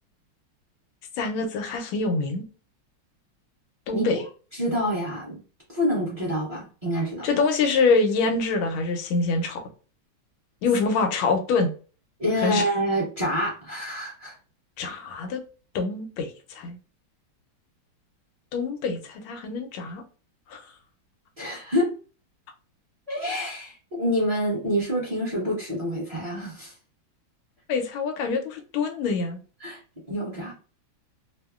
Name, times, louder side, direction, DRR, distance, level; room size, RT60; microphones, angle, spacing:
voice 1, 1.2-2.4 3.9-4.2 7.2-9.6 10.6-11.7 12.4-12.7 14.8-15.4 15.7-16.8 18.5-20.0 20.5-20.6 27.7-29.4, left 4 dB, 85° left, 5 dB, 1.5 m, -25 dB
voice 2, 4.6-5.4 5.7-7.3 12.2-14.3 21.4-21.9 23.1-26.7 29.6-29.8 30.1-30.5, equal, 30° right, -6 dB, 0.6 m, -27 dB
3.3 x 2.0 x 2.3 m, 0.37 s
omnidirectional pair, 2.2 m